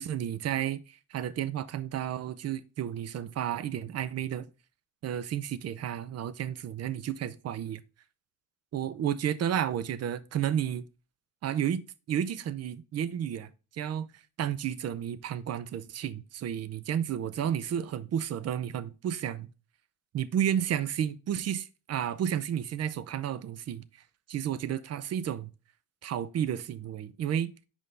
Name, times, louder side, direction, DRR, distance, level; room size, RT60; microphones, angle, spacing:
voice 1, 0.0-4.5 5.0-7.8 8.7-10.9 11.4-14.1 14.4-19.5 20.1-23.8 24.3-25.5 26.0-27.5, right 9 dB, 55° right, 0.6 m, -32 dB
6.3 x 5.2 x 3.3 m
cardioid pair, 90°, 30 cm